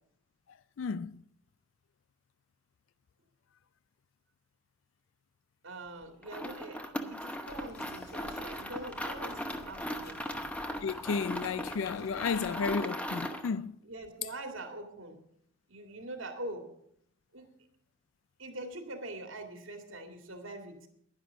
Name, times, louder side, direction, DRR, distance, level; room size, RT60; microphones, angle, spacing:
voice 1, 0.8-1.2 10.8-13.8, left 5 dB, 70° left, 0.4 m, -33 dB
voice 2, 5.6-10.4 13.8-15.2 15.7-16.7 17.3-17.5 18.4-20.9, right 1 dB, 80° right, 2.2 m, -43 dB
sound 1, 6.2-13.6, equal, 5° left, 0.9 m, -38 dB
sound 2, 7.5-12.7, left 3 dB, 50° left, 1.0 m, -54 dB
11.0 x 10.5 x 6.3 m
head